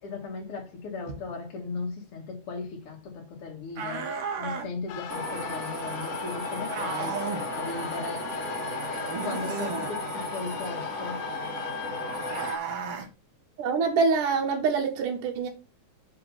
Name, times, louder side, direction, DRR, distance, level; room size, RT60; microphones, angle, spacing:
voice 1, 0.0-8.3 9.2-11.2, left 4 dB, 55° left, 2.0 m, -37 dB
sound 1, 3.8-4.7 6.7-7.5 9.1-9.9 12.3-13.1, right 6 dB, 60° right, 1.6 m, -33 dB
sound 2, 4.9-12.6, left 11 dB, 90° left, 2.2 m, -38 dB
sound 3, 5.1-12.5, equal, 40° right, 1.4 m, -35 dB
voice 2, 13.6-15.5, right 4 dB, 80° right, 2.6 m, -25 dB
5.7 x 3.8 x 5.5 m
omnidirectional pair, 3.7 m